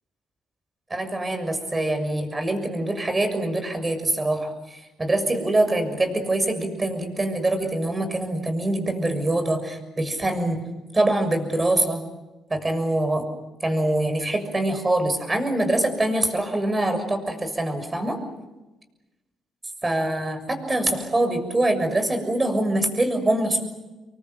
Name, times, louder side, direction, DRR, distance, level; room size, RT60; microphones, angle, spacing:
voice 1, 0.9-10.6 10.9-12.0 12.5-13.3 13.6-18.2 19.8-23.7, right 1 dB, 20° right, 7 dB, 6.7 m, -24 dB
27.0 x 23.5 x 8.0 m, 1.1 s
cardioid pair, 90°, 0 cm